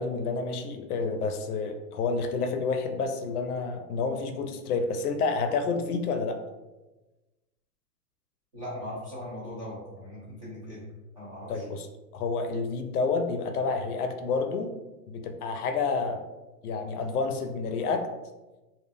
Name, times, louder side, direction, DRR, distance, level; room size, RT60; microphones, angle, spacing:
voice 1, 0.0-6.4 11.5-11.9 12.1-14.7 15.1-16.2 16.6-18.1, left 4 dB, 70° left, 6 dB, 0.5 m, -29 dB
voice 2, 8.5-10.8 11.1-11.6, left 1 dB, 25° right, -8 dB, 0.4 m, -39 dB
2.2 x 2.1 x 3.4 m, 1.1 s
hypercardioid pair, 150°, 48 cm